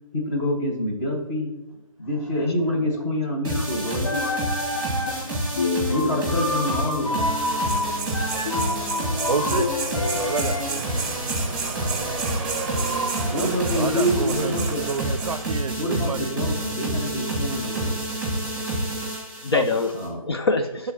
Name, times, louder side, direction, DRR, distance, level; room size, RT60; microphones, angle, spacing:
voice 1, 0.1-1.5 2.0-4.1 5.9-7.3 13.3-14.8 15.8-17.9 19.9-20.2, equal, 25° left, -2 dB, 1.7 m, -26 dB
sound 1, 3.4-20.1, right 1 dB, 5° right, 2.1 m, -29 dB
sound 2, 3.9-5.3 5.5-10.6, left 2 dB, 85° left, 1.8 m, -27 dB
voice 2, 4.8-5.9 19.4-19.9 20.3-20.9, left 3 dB, 45° left, 6 dB, 0.5 m, -27 dB
sound 3, 7.4-15.4, right 4 dB, 25° right, 0.8 m, -32 dB
voice 3, 9.2-9.7 10.1-10.9 13.3-13.5 13.7-16.3 19.4-19.8 20.8-20.9, right 5 dB, 75° right, 15 dB, 0.5 m, -29 dB
12.0 x 4.0 x 2.9 m, 1.0 s
figure-of-eight pair, 155°, 18 cm